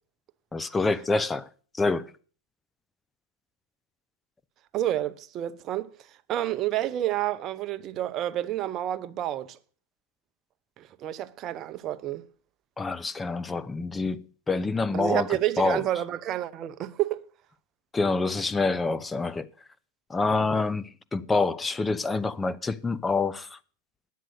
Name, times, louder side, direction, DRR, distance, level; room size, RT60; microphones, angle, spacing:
voice 1, 0.5-1.5 1.8-2.1 12.8-15.3 15.6-15.8 17.9-19.5 20.1-23.6, left 3 dB, 10° left, 0.6 m, -27 dB
voice 2, 4.7-9.6 10.8-12.3 14.9-17.2, right 13 dB, 35° right, 0.7 m, -29 dB
9.4 x 7.6 x 7.8 m
hypercardioid pair, 125°, 0 cm